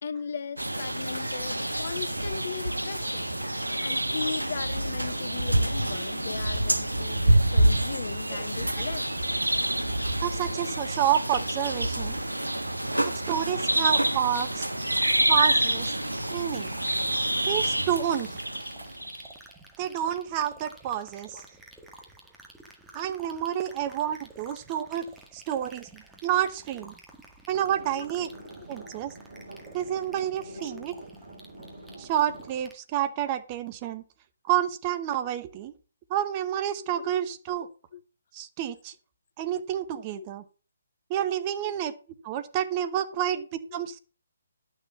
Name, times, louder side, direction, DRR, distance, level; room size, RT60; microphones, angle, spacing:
voice 1, 0.0-3.3 3.6-9.0 21.3-21.4 24.5-24.6 26.8-26.9 28.0-28.1 30.4-30.9 36.8-37.1 37.5-37.6 37.9-38.0 40.1-40.3 41.6-41.8 43.2-43.3, left 6 dB, 55° left, 0.8 m, -38 dB
sound 1, 0.6-19.3, right 1 dB, 90° right, 1.4 m, -27 dB
voice 2, 10.2-12.2 13.0-14.7 15.3-15.9 16.3-16.7 17.5-18.4 19.8-21.4 22.9-26.9 27.5-28.3 28.7-29.1 29.7-30.9 32.0-34.0 34.4-35.7 36.1-37.7 38.3-38.9 39.4-40.4 41.1-41.9 42.2-44.0, right 10 dB, 25° right, 1.0 m, -29 dB
sound 2, 14.0-32.7, right 2 dB, 5° right, 1.8 m, -52 dB
sound 3, 27.5-32.5, right 2 dB, 55° right, 4.1 m, -46 dB
11.0 x 6.6 x 5.4 m
figure-of-eight pair, 140°, 0 cm